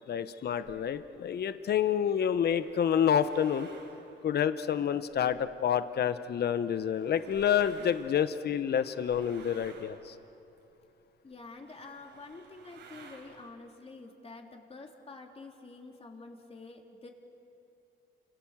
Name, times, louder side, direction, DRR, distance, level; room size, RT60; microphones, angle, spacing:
voice 1, 0.1-3.7 4.2-10.1, left 8 dB, 55° left, 12 dB, 1.0 m, -28 dB
sound 1, 0.6-1.1 1.9-5.8 6.2-10.8 11.3-11.4 11.6-13.5, right 4 dB, 70° right, 5.3 m, -55 dB
voice 2, 11.2-17.1, left 3 dB, 30° left, 2 dB, 3.6 m, -48 dB
29.5 x 27.0 x 7.4 m, 2.9 s
cardioid pair, 90°, 20 cm